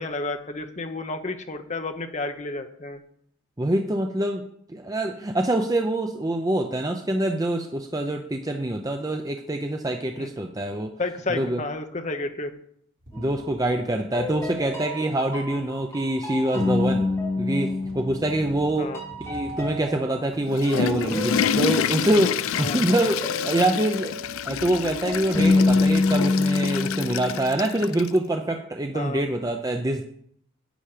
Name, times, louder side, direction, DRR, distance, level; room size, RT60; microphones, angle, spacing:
voice 1, 0.0-3.0 10.2-10.3 11.0-12.6 18.8-19.0 22.6-22.8 28.9-29.2, left 2 dB, 35° left, 7 dB, 0.9 m, -31 dB
voice 2, 3.6-10.9 11.3-11.6 13.2-17.1 17.4-18.9 19.2-24.2 24.4-30.0, right 1 dB, 15° right, 4 dB, 0.6 m, -25 dB
sound 1, 13.0-13.7 14.0-14.8 15.6-15.7 16.7-17.4 17.7-20.1, equal, 65° right, 4.2 m, -46 dB
sound 2, 13.1-13.7 14.1-18.7 18.9-27.7, left 3 dB, 10° left, 2.7 m, -27 dB
Water / Toilet flush, 20.3-28.2, left 8 dB, 75° left, 0.4 m, -28 dB
10.0 x 8.8 x 5.0 m, 0.67 s
head